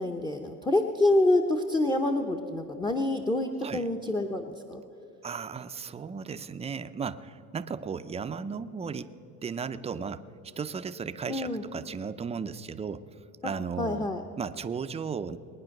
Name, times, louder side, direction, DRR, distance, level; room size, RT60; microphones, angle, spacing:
voice 1, 0.0-4.8 11.3-11.6 13.4-13.5 13.8-14.2, left 2 dB, 15° left, 3 dB, 0.9 m, -27 dB
voice 2, 5.2-9.1 9.4-10.2 10.6-13.0 13.4-14.1 14.4-15.4, right 6 dB, 20° right, 11 dB, 0.5 m, -35 dB
21.0 x 9.7 x 6.5 m, 3.0 s
cardioid pair, 130°, 31 cm